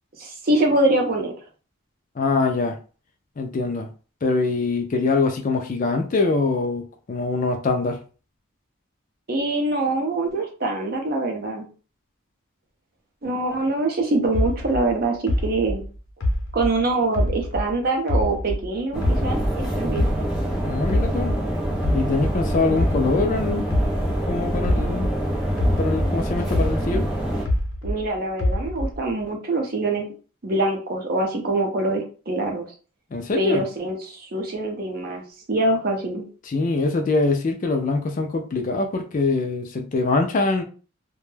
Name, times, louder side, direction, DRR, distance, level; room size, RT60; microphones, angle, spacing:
voice 1, 0.2-1.3 9.3-11.6 13.2-15.8 16.5-20.1 27.8-30.1 30.4-32.7 33.4-35.2 35.5-36.2, right 2 dB, 45° right, 0.6 m, -24 dB
voice 2, 2.2-2.8 3.4-3.9 4.2-8.0 20.6-21.3 21.9-23.7 24.3-25.1 25.8-27.1 33.1-33.6 36.5-40.6, left 3 dB, 40° left, 0.3 m, -23 dB
sound 1, 14.3-17.7 18.1-20.5 20.9-25.2 25.6-28.0 28.4-29.1, left 1 dB, 75° left, 0.6 m, -25 dB
sound 2, 18.9-27.4, equal, ahead, 0.6 m, -25 dB
2.2 x 2.1 x 3.1 m
head